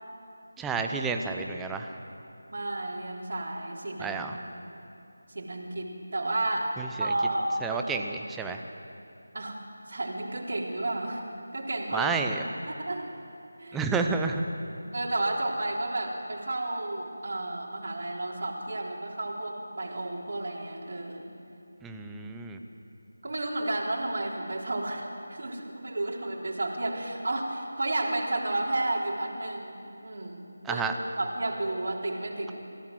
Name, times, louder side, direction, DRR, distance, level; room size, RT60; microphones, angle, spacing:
voice 1, 0.6-1.9 4.0-4.4 6.8-7.1 7.6-8.6 11.9-12.4 13.7-14.4 21.8-22.6 30.6-30.9, right 4 dB, 5° right, 4 dB, 0.8 m, -30 dB
voice 2, 2.5-4.2 5.3-6.7 7.0-8.0 9.3-9.6 9.9-11.2 11.5-12.1 12.7-13.1 13.6-13.8 14.9-21.3 23.2-30.8 31.2-32.5, right 2 dB, 55° right, -2 dB, 3.7 m, -32 dB
25.0 x 15.5 x 7.9 m, 2.7 s
figure-of-eight pair, 160°, 0 cm